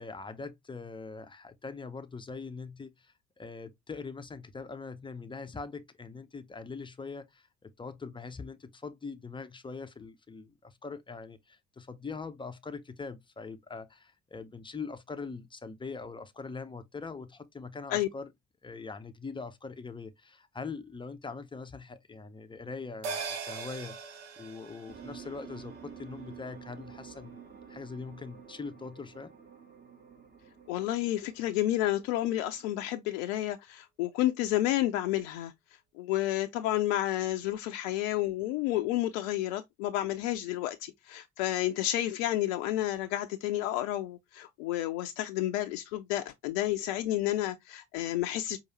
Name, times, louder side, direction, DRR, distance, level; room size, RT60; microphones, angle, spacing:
voice 1, 0.0-18.3 18.6-24.0 24.4-29.3, left 4 dB, 15° left, 0.5 m, -42 dB
sound 1, 23.0-27.8 28.1-28.2, right 5 dB, 70° right, 0.8 m, -42 dB
sound 2, 24.9-32.9, right 7 dB, 25° right, 1.2 m, -51 dB
voice 2, 30.7-35.5 36.0-48.6, left 14 dB, 70° left, 0.5 m, -30 dB
4.7 x 2.4 x 2.9 m
figure-of-eight pair, 50°, 38 cm